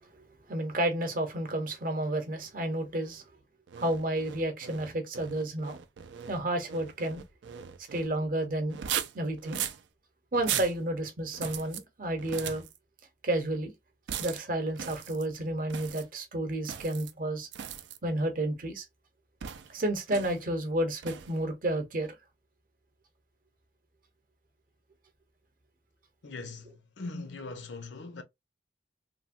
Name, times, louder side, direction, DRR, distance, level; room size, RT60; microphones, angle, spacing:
voice 1, 0.5-3.2 3.8-5.8 6.3-7.2 7.9-8.8 9.1-9.6 10.3-12.6 13.2-13.7 14.2-17.5 18.0-18.8 19.7-22.1, right 1 dB, 50° right, 0.8 m, -31 dB
sound 1, 3.7-8.1 8.7-9.8 10.3-10.8 11.3-11.8 12.2-12.8 14.1-14.4 14.8-15.3 15.7-16.1 16.6-17.1 17.5-18.0 19.4-19.7 20.1-20.4 21.0-21.4, right 9 dB, 75° right, 0.4 m, -38 dB
voice 2, 26.2-28.2, left 3 dB, 75° left, 0.7 m, -41 dB
3.2 x 2.1 x 2.5 m
head